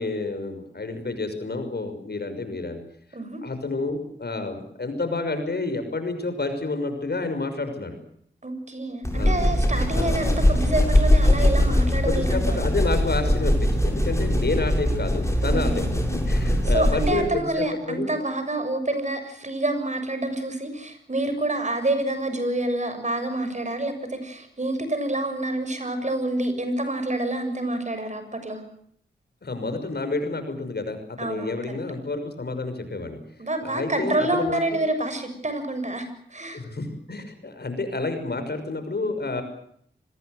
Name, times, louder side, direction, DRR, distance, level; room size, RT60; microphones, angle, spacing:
voice 1, 0.0-2.8 3.4-8.0 9.1-9.4 9.9-10.2 12.0-18.1 29.4-33.2 33.6-34.8 36.5-39.4, left 3 dB, 55° left, 8 dB, 6.0 m, -29 dB
voice 2, 8.4-12.7 15.5-15.9 16.7-28.6 31.2-31.8 33.4-36.6, right 1 dB, 35° right, 9 dB, 7.2 m, -27 dB
sound 1, 9.0-17.3, left 1 dB, 15° left, 7.9 m, -21 dB
25.0 x 20.5 x 8.0 m, 0.68 s
cardioid pair, 45°, 20 cm